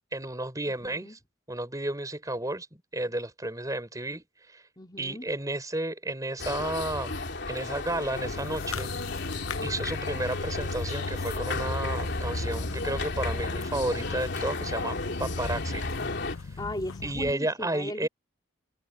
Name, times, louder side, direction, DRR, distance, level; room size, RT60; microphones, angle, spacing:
voice 1, 0.1-1.2 1.5-2.7 2.9-4.6 5.0-7.2 7.5-8.9 9.6-15.8 17.0-18.1, right 1 dB, 15° right, 4.6 m, -32 dB
voice 2, 0.7-1.2 4.8-5.3 16.6-18.1, left 1 dB, 20° left, 2.7 m, -38 dB
sound 1, 6.4-16.3, left 2 dB, 55° left, 3.1 m, -33 dB
sound 2, 8.2-17.3, left 4 dB, 80° left, 0.8 m, -39 dB
head